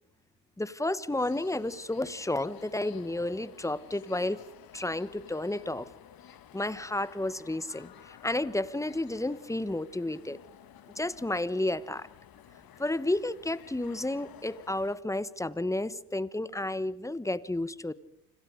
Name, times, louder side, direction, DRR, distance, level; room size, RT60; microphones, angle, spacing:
voice 1, 0.6-4.4 4.7-5.9 6.5-10.4 11.0-12.1 12.8-17.9, left 1 dB, 5° left, 17 dB, 1.2 m, -31 dB
sound 1, 1.1-15.0, left 10 dB, 50° left, 1.9 m, -53 dB
29.5 x 26.5 x 5.1 m, 0.73 s
hypercardioid pair, 65°, 47 cm